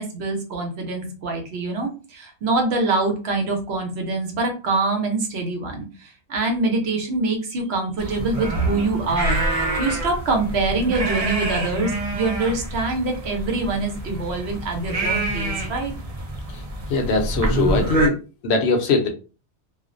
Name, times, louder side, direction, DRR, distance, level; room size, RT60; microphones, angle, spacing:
voice 1, 0.0-9.4 9.8-15.9, right 3 dB, 65° right, 3 dB, 0.9 m, -24 dB
sound 1, 8.0-18.1, right 2 dB, 45° right, 0.4 m, -27 dB
voice 2, 16.9-18.2 18.4-19.1, left 3 dB, 70° left, 4 dB, 0.8 m, -20 dB
2.4 x 2.0 x 2.5 m, 0.32 s
omnidirectional pair, 1.2 m